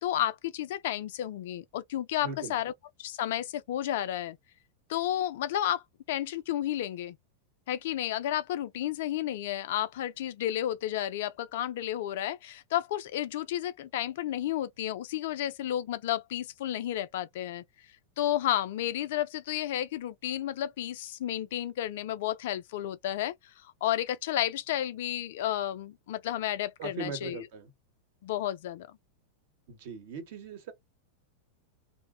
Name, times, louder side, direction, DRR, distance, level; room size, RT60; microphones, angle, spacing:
voice 1, 0.0-2.7 3.0-4.4 4.9-7.2 7.7-17.6 18.2-27.5 28.2-28.9, left 12 dB, 55° left, 0.3 m, -32 dB
voice 2, 2.2-2.6 26.8-27.7 29.7-30.7, right 5 dB, 50° right, 0.9 m, -39 dB
2.6 x 2.1 x 2.3 m
figure-of-eight pair, 90°, 0 cm